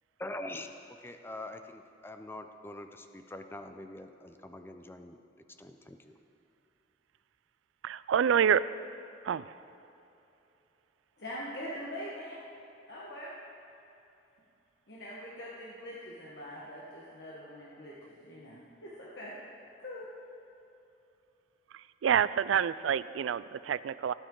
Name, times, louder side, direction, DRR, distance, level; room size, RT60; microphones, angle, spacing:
voice 1, 0.2-5.2 5.6-6.2, left 1 dB, 10° left, 7 dB, 0.5 m, -44 dB
voice 2, 7.8-8.6 9.2-9.5 22.0-24.1, right 8 dB, 85° right, 17 dB, 0.3 m, -27 dB
voice 3, 11.2-12.4 12.9-13.3 14.9-19.3 19.8-20.0, equal, 60° left, -6 dB, 1.4 m, -43 dB
17.5 x 9.0 x 3.8 m, 2.9 s
head